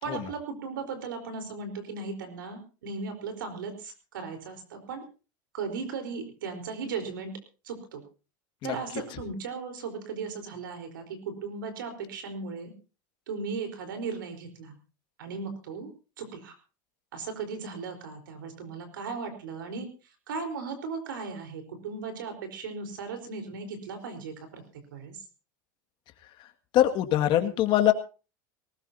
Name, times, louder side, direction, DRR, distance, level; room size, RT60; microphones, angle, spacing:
voice 1, 0.0-5.0 5.5-7.4 7.6-8.0 8.6-12.7 13.3-14.8 15.2-15.9 16.2-16.6 17.1-19.9 20.3-25.2, right 4 dB, 85° right, 6 dB, 4.4 m, -37 dB
voice 2, 26.7-27.9, left 12 dB, 50° left, 6 dB, 2.1 m, -23 dB
19.0 x 19.0 x 2.8 m, 0.34 s
supercardioid pair, 105°, 11 cm